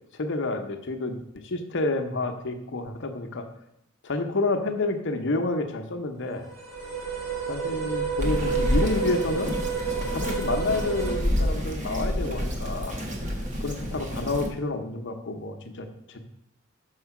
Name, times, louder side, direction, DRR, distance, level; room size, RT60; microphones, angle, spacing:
voice 1, 0.1-1.2 1.4-3.5 4.0-6.5 7.5-9.5 10.1-13.0 13.6-16.2, left 2 dB, 60° left, 6 dB, 0.9 m, -29 dB
sound 1, 6.4-11.2, right 5 dB, 70° right, 2.3 m, -30 dB
Bird vocalization bird call bird song, 8.2-14.5, equal, 35° right, 1.3 m, -29 dB
6.5 x 4.8 x 5.9 m, 0.81 s
head